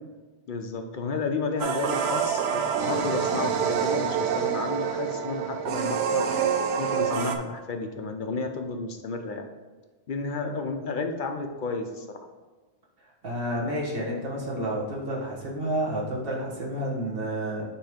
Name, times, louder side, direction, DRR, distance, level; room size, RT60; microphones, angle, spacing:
voice 1, 0.5-6.3 6.8-9.5 10.1-12.3, left 4 dB, 55° left, 5 dB, 0.7 m, -32 dB
sound 1, 1.6-7.4, right 7 dB, 70° right, 0.9 m, -27 dB
voice 2, 13.2-17.6, right 1 dB, 55° right, -3 dB, 1.6 m, -30 dB
7.4 x 3.0 x 5.0 m, 1.3 s
omnidirectional pair, 1.2 m